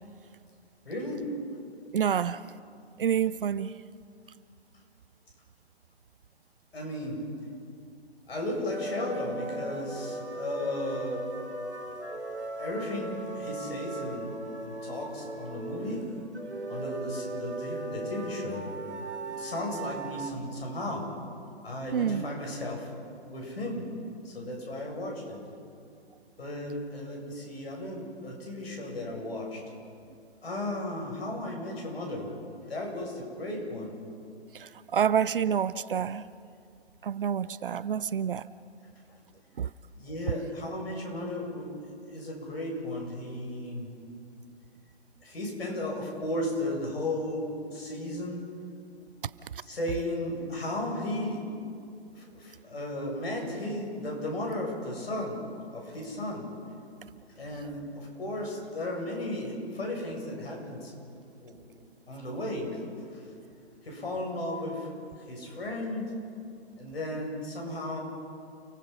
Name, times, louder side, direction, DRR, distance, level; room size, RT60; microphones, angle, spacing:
voice 1, 0.8-1.2 6.7-7.2 8.3-11.3 12.6-14.3 14.6-16.0 16.7-18.6 19.4-21.0 21.6-22.9 23.3-23.9 24.2-25.4 26.4-29.6 30.4-32.3 32.7-33.9 39.9-43.9 45.2-48.4 49.7-51.4 52.1-55.4 55.7-56.4 57.4-60.9 61.4-61.5 62.1-62.7 63.0-63.2 63.8-64.9 65.3-66.1 66.8-68.0, left 1 dB, 65° left, 8.0 m, -35 dB
voice 2, 1.9-2.4 3.0-3.8 21.9-22.2 34.5-36.2 37.0-38.4 39.6-39.7, right 8 dB, 55° right, 0.6 m, -28 dB
sound 1, 8.7-20.3, right 2 dB, 90° right, 2.9 m, -38 dB
30.0 x 18.5 x 5.7 m
figure-of-eight pair, 135°, 33 cm